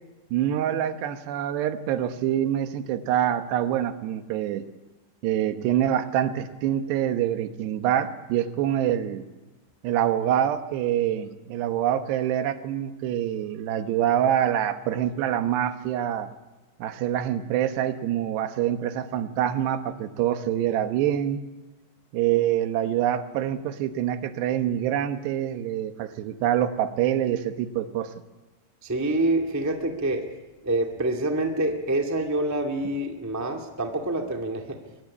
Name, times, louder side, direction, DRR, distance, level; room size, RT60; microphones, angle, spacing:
voice 1, 0.3-4.7 5.2-9.3 9.8-16.3 16.8-21.4 22.1-28.1, right 11 dB, 85° right, 9 dB, 3.4 m, -25 dB
voice 2, 28.8-30.2 30.6-34.8, right 2 dB, 15° right, 3 dB, 0.6 m, -26 dB
23.0 x 22.0 x 8.5 m, 1.1 s
omnidirectional pair, 4.7 m